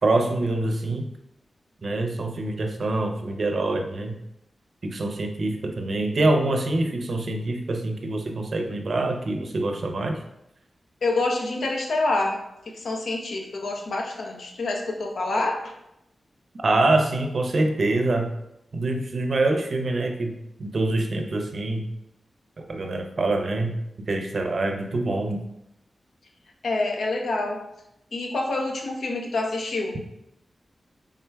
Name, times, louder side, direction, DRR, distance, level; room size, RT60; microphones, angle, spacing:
voice 1, 0.0-1.1 1.8-4.2 4.8-10.2 16.6-18.3 18.7-21.9 22.6-23.7 24.1-25.4, right 2 dB, 60° right, 4 dB, 0.5 m, -25 dB
voice 2, 11.0-12.4 12.7-15.6 26.6-27.6 28.1-30.0, left 2 dB, 85° left, 2 dB, 0.6 m, -27 dB
4.4 x 3.6 x 2.2 m, 0.82 s
wide cardioid pair, 90°, 0 cm